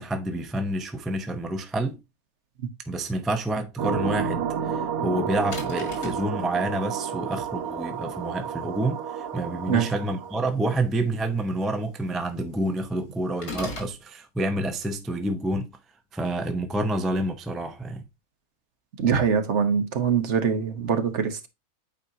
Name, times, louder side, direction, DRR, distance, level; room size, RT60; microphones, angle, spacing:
voice 1, 0.0-2.0 2.9-15.7 16.1-18.0, right 1 dB, ahead, 0.4 m, -28 dB
sound 1, 3.8-10.4, right 7 dB, 90° right, 1.3 m, -31 dB
sound 2, 5.5-6.3 13.4-14.0, left 2 dB, 90° left, 2.6 m, -35 dB
voice 2, 19.0-21.5, right 7 dB, 55° right, 1.3 m, -23 dB
8.5 x 4.4 x 2.7 m
omnidirectional pair, 1.5 m